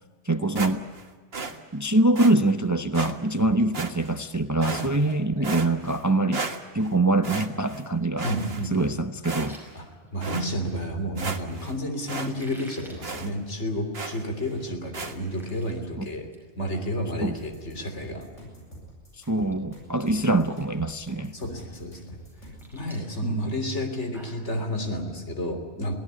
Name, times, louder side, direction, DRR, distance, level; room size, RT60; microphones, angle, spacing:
voice 1, 0.2-0.8 1.7-8.3 8.7-9.6 16.0-16.1 17.2-17.3 19.2-21.3 23.2-23.5, right 2 dB, 15° right, 10 dB, 0.7 m, -24 dB
sound 1, 0.5-1.0 1.3-1.6 2.1-2.3 2.9-3.1 3.7-4.2 4.6-5.1 5.4-6.0 6.3-6.9 7.2-7.8 8.2-8.9 9.2-9.7 10.2-10.5 10.9-11.0 11.2-11.7 12.1-12.3 12.6-12.7 13.0-13.3 13.9-14.3 14.9-15.1, right 4 dB, 55° right, 1.9 m, -34 dB
voice 2, 5.1-5.5 8.2-8.7 9.8-9.9 10.1-16.3 16.6-18.3 21.3-22.2 22.7-25.9, equal, 70° left, 5 dB, 3.7 m, -31 dB
sound 2, 9.1-10.7 12.2-13.0 13.4-13.6 14.0-14.1 14.6-14.7 14.9-15.7 16.1-16.4 16.7-16.9 18.7-18.8 19.3-19.6 19.8-20.3 20.7-20.8 22.2-24.5, equal, ahead, 5.6 m, -49 dB
sound 3, 17.4-22.7, right 1 dB, 85° left, 8.5 m, -46 dB
23.5 x 17.0 x 9.8 m, 1.5 s
omnidirectional pair, 1.2 m